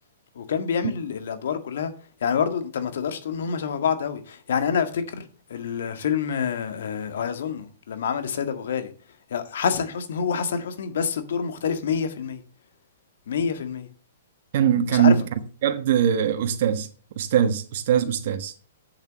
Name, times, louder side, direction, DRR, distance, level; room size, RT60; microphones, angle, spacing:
voice 1, 0.3-1.9 2.2-8.9 9.3-12.4 13.3-13.9 14.9-15.3, left 7 dB, 70° left, 1.8 m, -27 dB
voice 2, 14.5-15.1 15.6-16.9 17.2-18.5, right 9 dB, 55° right, 1.2 m, -21 dB
8.0 x 7.3 x 6.8 m
hypercardioid pair, 130°, 0 cm